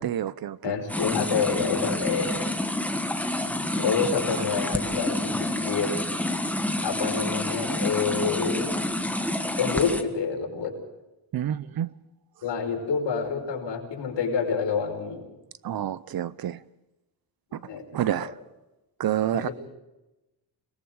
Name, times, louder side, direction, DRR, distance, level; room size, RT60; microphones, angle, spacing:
voice 1, 0.0-0.7 11.3-11.9 15.6-16.6 17.5-17.6 17.9-18.3 19.0-19.5, right 11 dB, 55° right, 0.6 m, -28 dB
voice 2, 0.6-2.5 3.8-5.9 6.8-8.7 9.6-10.7 12.4-15.3 17.6-17.8 18.2-18.3 19.3-19.5, left 6 dB, 75° left, 5.4 m, -28 dB
sound 1, 0.9-10.0, left 1 dB, 5° left, 1.3 m, -28 dB
29.5 x 20.0 x 4.8 m
wide cardioid pair, 145°, 43 cm